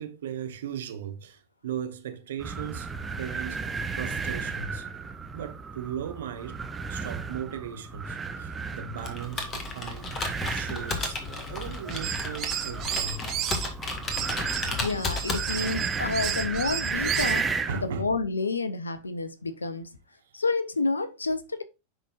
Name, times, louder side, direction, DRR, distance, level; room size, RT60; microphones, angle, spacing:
voice 1, 0.0-2.9 3.2-3.7 4.0-4.9 5.3-6.6 6.9-10.2 10.5-11.2 11.5-13.2 17.7-18.0, right 8 dB, 60° right, 1.1 m, -37 dB
sound 1, 2.4-17.9, right 4 dB, 15° right, 0.7 m, -34 dB
Computer keyboard, 9.0-15.9, left 3 dB, 25° left, 1.7 m, -34 dB
sound 2, 11.9-13.7 14.1-17.4, right 10 dB, 35° right, 1.0 m, -33 dB
voice 2, 14.8-17.5 17.8-19.9 20.3-21.6, left 3 dB, 75° left, 0.8 m, -29 dB
10.5 x 4.0 x 2.4 m
figure-of-eight pair, 90°, 0 cm